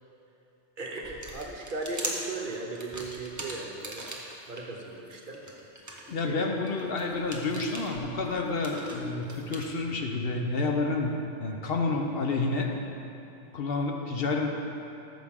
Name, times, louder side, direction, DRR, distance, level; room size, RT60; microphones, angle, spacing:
voice 1, 0.8-4.1 4.5-5.4 6.0-6.4, right 3 dB, 50° right, 0 dB, 0.9 m, -37 dB
sound 1, 1.0-4.6 5.1-9.7, right 1 dB, 15° right, 0.8 m, -40 dB
voice 2, 6.1-12.7 13.5-14.5, left 3 dB, 60° left, 2 dB, 0.9 m, -29 dB
13.0 x 6.0 x 3.6 m, 2.8 s
omnidirectional pair, 1.2 m